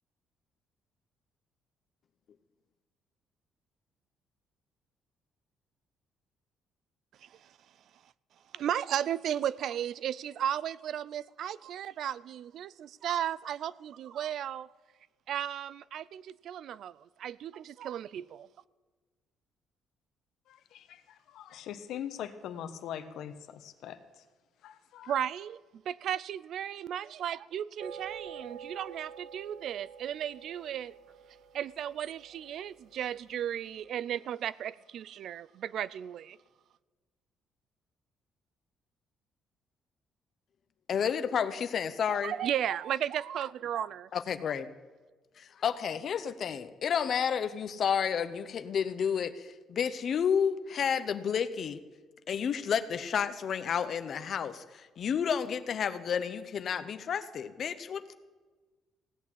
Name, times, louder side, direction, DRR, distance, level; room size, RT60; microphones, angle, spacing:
voice 1, 7.2-7.5 8.5-14.7 15.3-18.5 25.1-25.6 25.9-30.9 31.5-36.4 42.1-44.1, right 10 dB, 50° right, 0.3 m, -35 dB
voice 2, 20.5-21.0 21.3-24.0 24.6-25.1, left 9 dB, 65° left, 1.1 m, -41 dB
sound 1, 27.8-33.3, right 7 dB, 90° right, 1.6 m, -48 dB
voice 3, 40.9-42.3 44.1-44.7 45.4-51.8 52.3-58.1, left 7 dB, 40° left, 0.8 m, -31 dB
16.5 x 8.6 x 8.4 m
cardioid pair, 180°, 0 cm